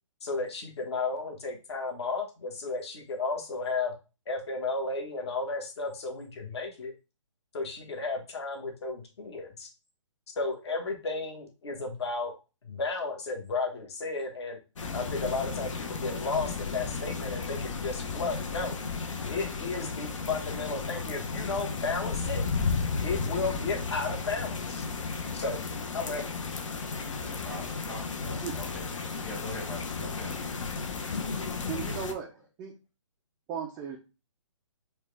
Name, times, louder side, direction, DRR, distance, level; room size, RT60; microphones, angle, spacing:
voice 1, 0.2-3.9 4.3-6.9 7.5-9.7 10.4-12.3 12.6-14.6 14.9-18.8 19.3-22.4 23.0-24.9 25.3-25.6 25.9-26.3, left 3 dB, 55° left, 2 dB, 1.3 m, -33 dB
sound 1, 14.8-32.1, left 4 dB, 70° left, 0.7 m, -34 dB
voice 2, 27.2-28.9 29.2-30.3, left 1 dB, 30° left, -7 dB, 1.5 m, -42 dB
voice 3, 31.7-32.3 32.6-32.7 33.5-34.0, right 7 dB, 10° right, -1 dB, 0.3 m, -35 dB
4.7 x 2.3 x 3.3 m, 0.30 s
hypercardioid pair, 145°, 17 cm